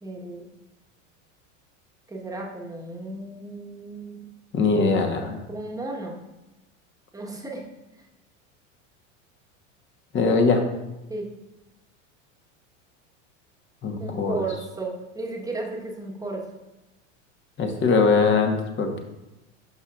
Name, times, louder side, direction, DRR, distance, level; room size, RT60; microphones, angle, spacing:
voice 1, 0.0-0.4 2.1-4.3 5.5-6.2 7.1-7.6 11.1-11.3 14.0-16.4, right 2 dB, 10° right, -1 dB, 1.2 m, -34 dB
voice 2, 4.5-5.4 10.1-10.6 13.8-14.4 17.6-19.0, left 4 dB, 30° left, 4 dB, 1.2 m, -21 dB
11.0 x 5.5 x 2.4 m, 0.98 s
hypercardioid pair, 105°, 37 cm